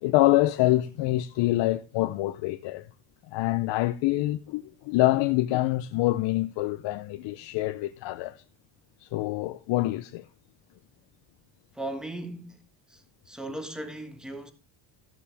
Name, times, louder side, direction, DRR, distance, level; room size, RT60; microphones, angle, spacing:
voice 1, 0.0-2.8 3.3-8.4 9.0-10.3, left 17 dB, 75° left, 0.7 m, -26 dB
voice 2, 11.7-14.5, right 1 dB, ahead, 1.4 m, -38 dB
14.0 x 7.1 x 3.4 m
cardioid pair, 140°, 44 cm